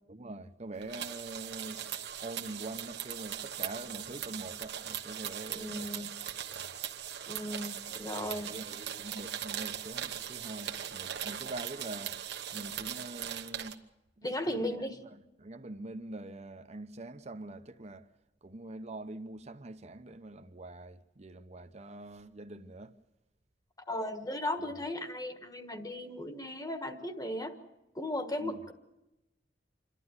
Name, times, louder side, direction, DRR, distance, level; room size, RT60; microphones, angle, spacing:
voice 1, 0.1-6.1 6.5-6.7 7.9-13.8 14.2-18.1 18.4-22.9 24.6-24.8 28.4-28.6, right 2 dB, 40° right, 0.9 m, -44 dB
sound 1, 0.8-13.7, right 10 dB, 70° right, 1.2 m, -40 dB
voice 2, 5.6-6.1 7.3-8.5 14.2-14.9 23.9-27.6 27.9-28.7, left 1 dB, 20° left, 1.5 m, -36 dB
27.0 x 12.0 x 9.6 m
head